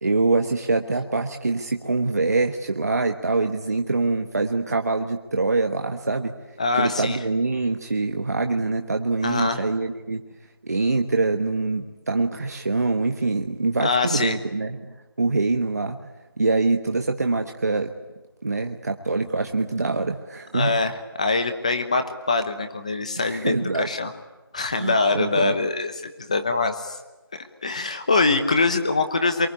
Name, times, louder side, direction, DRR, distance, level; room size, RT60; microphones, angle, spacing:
voice 1, 0.0-6.3 6.7-10.2 10.6-14.8 15.2-16.0 16.4-17.9 18.4-20.7 23.2-23.9 24.8-25.6, right 3 dB, 40° right, 4 dB, 1.3 m, -24 dB
voice 2, 6.6-7.2 9.2-9.6 13.8-14.4 20.5-24.1 24.5-25.9 26.2-27.0 27.6-29.5, left 3 dB, 15° left, 8 dB, 1.0 m, -23 dB
25.5 x 23.5 x 9.7 m, 1.1 s
figure-of-eight pair, 180°, 13 cm